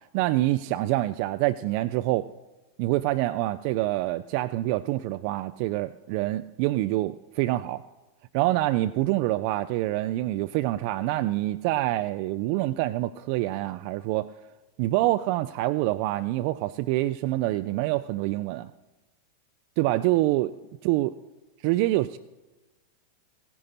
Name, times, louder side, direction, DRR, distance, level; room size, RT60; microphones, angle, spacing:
voice 1, 0.1-2.3 2.8-7.8 8.3-14.3 14.8-18.7 19.8-20.5 20.8-21.1 21.6-22.2, right 16 dB, 45° right, 11 dB, 0.3 m, -26 dB
16.5 x 10.0 x 4.2 m, 1.1 s
figure-of-eight pair, 90°, 0 cm